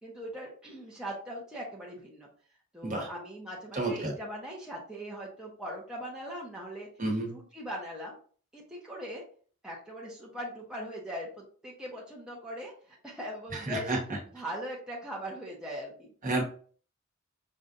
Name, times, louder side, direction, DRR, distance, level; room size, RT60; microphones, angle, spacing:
voice 1, 0.0-2.3 2.7-6.9 7.2-8.2 8.5-9.2 9.6-13.9 14.3-16.1, equal, 5° right, -4 dB, 0.8 m, -40 dB
voice 2, 3.7-4.1 7.0-7.3 13.5-14.0 16.2-16.4, right 2 dB, 40° right, 0 dB, 1.2 m, -30 dB
5.4 x 2.4 x 2.5 m, 0.44 s
head